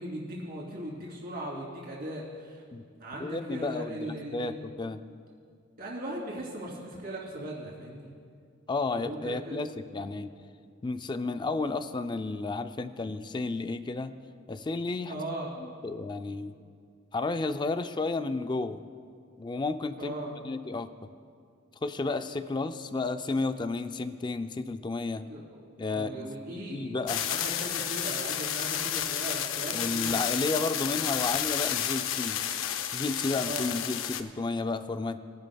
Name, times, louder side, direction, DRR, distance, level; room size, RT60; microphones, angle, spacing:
voice 1, 0.0-2.6 3.0-4.6 5.8-8.1 8.9-9.7 15.0-15.6 20.0-20.4 25.3-27.0 27.2-30.2 33.4-33.7, right 1 dB, 50° right, -4 dB, 3.0 m, -38 dB
voice 2, 3.2-5.0 8.7-10.3 10.8-14.1 14.5-15.2 15.6-16.5 17.1-18.8 19.4-20.1 20.4-20.9 21.8-25.3 25.8-27.2 29.7-32.4 32.9-35.2, left 3 dB, 25° left, 10 dB, 0.4 m, -32 dB
sound 1, 27.1-34.2, left 10 dB, 80° left, 0.5 m, -31 dB
22.5 x 10.5 x 2.3 m, 2.2 s
head